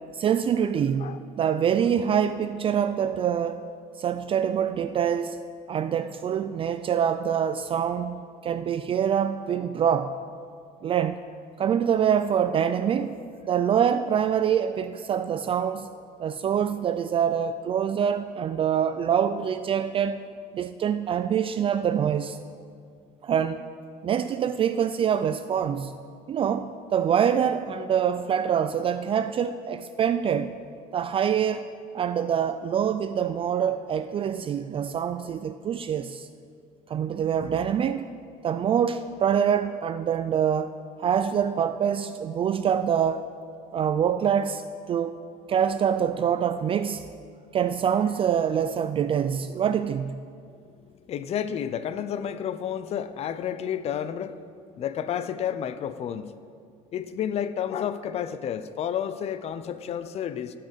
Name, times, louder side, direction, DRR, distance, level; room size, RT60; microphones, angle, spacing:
voice 1, 0.1-3.7 4.0-5.4 5.7-10.1 10.8-11.2 11.6-13.2 13.4-15.9 16.2-20.2 20.5-22.4 23.2-23.6 24.0-25.9 26.3-30.5 30.9-31.7 31.9-36.3 36.9-38.1 38.4-40.7 41.0-43.2 43.7-44.6 44.9-45.1 45.5-47.0 47.5-50.2, right 8 dB, 35° right, 0.4 m, -25 dB
voice 2, 51.1-54.4 54.8-56.3 56.9-60.6, left 9 dB, 45° left, 0.5 m, -31 dB
16.5 x 5.7 x 5.3 m
cardioid pair, 110°, 15 cm